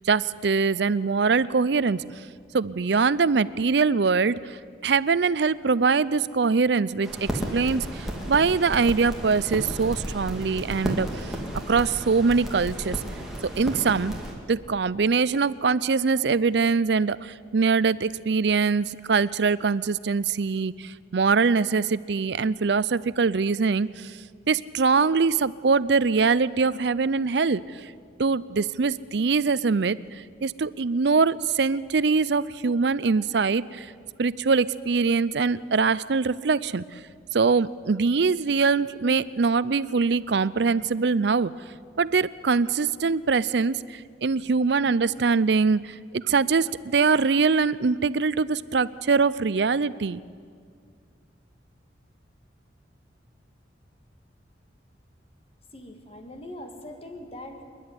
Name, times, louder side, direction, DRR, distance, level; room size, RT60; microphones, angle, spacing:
voice 1, 0.1-2.0 2.5-4.6 4.8-11.3 11.7-13.0 13.6-14.1 14.5-24.1 24.5-27.9 28.2-30.0 30.4-33.9 34.2-36.8 37.3-41.5 42.0-50.2, right 4 dB, 65° right, 18 dB, 0.5 m, -23 dB
sound 1, 7.0-14.3, equal, ahead, 2.5 m, -33 dB
voice 2, 55.7-57.6, left 1 dB, 30° left, 5 dB, 2.0 m, -41 dB
27.0 x 11.0 x 9.7 m, 2.1 s
head